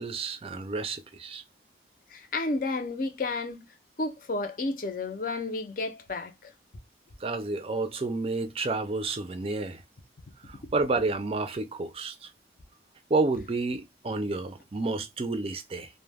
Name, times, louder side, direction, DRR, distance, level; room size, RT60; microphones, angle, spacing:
voice 1, 0.0-1.4 7.2-9.8 10.5-12.3 13.1-15.9, right 3 dB, 30° right, 0.4 m, -30 dB
voice 2, 2.1-3.7 4.0-6.5, left 3 dB, 45° left, 0.5 m, -31 dB
2.2 x 2.1 x 3.3 m
head